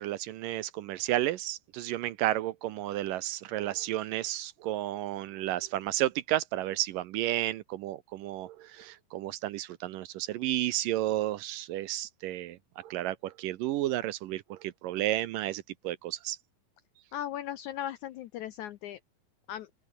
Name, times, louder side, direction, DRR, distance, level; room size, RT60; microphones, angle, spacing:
voice 1, 0.0-16.4, right 14 dB, 75° right, 2.3 m, -32 dB
voice 2, 17.1-19.0 19.5-19.7, left 11 dB, 75° left, 1.8 m, -37 dB
open air
omnidirectional pair, 4.3 m